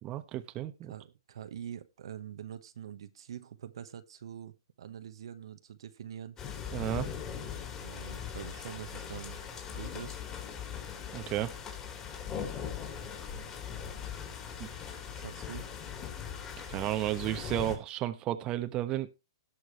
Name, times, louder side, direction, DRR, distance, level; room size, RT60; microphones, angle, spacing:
voice 1, 0.0-0.9 6.7-7.1 11.1-11.6 14.6-14.7 16.7-19.1, right 13 dB, 30° right, 1.1 m, -33 dB
voice 2, 0.9-6.4 7.8-9.4 9.7-10.2 10.7-10.9 15.1-15.7, right 9 dB, 65° right, 1.2 m, -45 dB
sound 1, 6.4-17.8, left 7 dB, 25° left, 3.8 m, -40 dB
18.0 x 6.5 x 3.1 m
hypercardioid pair, 130°, 3 cm